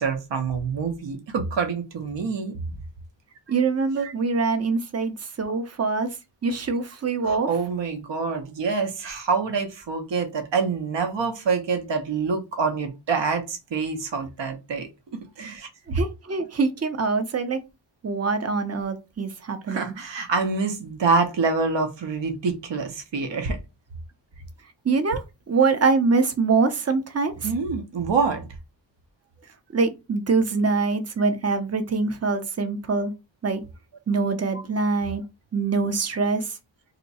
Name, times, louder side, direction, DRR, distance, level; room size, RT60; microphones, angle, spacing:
voice 1, 0.0-2.6 4.0-4.1 7.2-16.0 19.7-23.6 27.4-28.4, right 4 dB, 65° right, 0.8 m, -26 dB
voice 2, 3.5-6.1 6.4-7.5 15.9-17.6 18.0-19.9 24.8-27.5 29.7-33.1 33.4-33.6 34.1-35.2 35.5-36.6, right 4 dB, 35° right, 0.6 m, -24 dB
2.7 x 2.2 x 4.0 m
wide cardioid pair, 65°, 47 cm